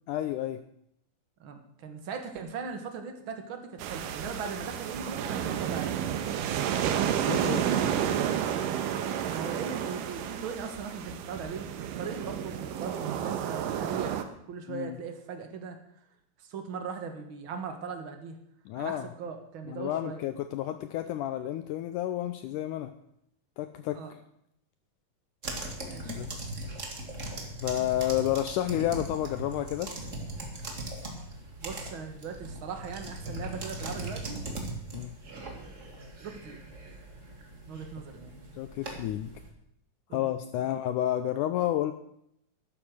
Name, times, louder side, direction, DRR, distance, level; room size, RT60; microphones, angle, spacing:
voice 1, 0.1-0.6 7.3-7.6 14.7-15.0 18.7-19.1 19.7-22.9 23.6-24.0 26.1-26.4 27.6-29.9 34.9-35.1 38.6-39.3 40.1-41.9, left 13 dB, 80° left, 10 dB, 1.9 m, -30 dB
voice 2, 1.4-6.6 7.0-7.9 9.3-15.8 16.4-18.3 18.7-20.2 23.9-24.1 25.8-26.2 31.6-34.4 35.2-35.9 36.2-36.7 37.7-38.4 40.1-40.6, right 5 dB, 50° right, 5 dB, 1.7 m, -39 dB
sound 1, 3.8-14.2, right 9 dB, 75° right, 2.5 m, -31 dB
sound 2, 25.4-39.5, right 2 dB, 30° right, 1.4 m, -40 dB
12.5 x 10.0 x 6.3 m, 0.74 s
omnidirectional pair, 4.1 m